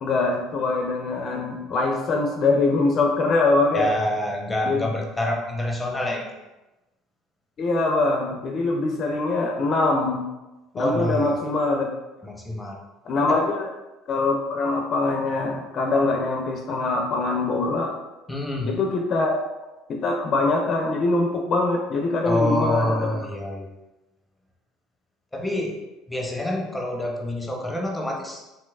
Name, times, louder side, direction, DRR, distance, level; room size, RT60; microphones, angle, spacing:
voice 1, 0.0-3.9 4.6-4.8 7.6-10.3 10.7-11.9 13.1-13.7 14.1-17.9 18.6-19.4 19.9-22.9, left 3 dB, 50° left, 2 dB, 0.4 m, -23 dB
voice 2, 3.7-6.4 10.7-11.4 12.2-12.8 18.3-18.7 22.2-23.7 25.3-25.8 26.1-28.4, left 1 dB, 10° left, 1 dB, 0.6 m, -27 dB
3.1 x 2.9 x 2.3 m, 1.0 s
hypercardioid pair, 80°, 0 cm